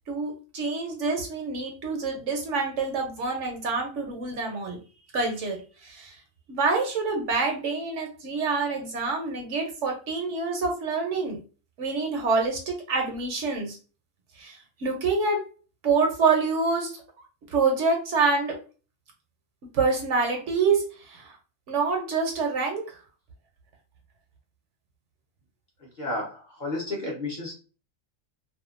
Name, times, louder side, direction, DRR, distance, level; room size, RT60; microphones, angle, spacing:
voice 1, 0.1-4.8 5.1-6.1 6.5-11.4 11.8-13.8 14.4-15.4 15.8-16.9 17.5-18.5 19.7-21.4 21.7-22.8, right 4 dB, 65° right, 2 dB, 1.0 m, -26 dB
voice 2, 26.0-27.5, left 2 dB, 40° left, -3 dB, 0.8 m, -32 dB
2.7 x 2.3 x 2.4 m, 0.36 s
omnidirectional pair, 1.4 m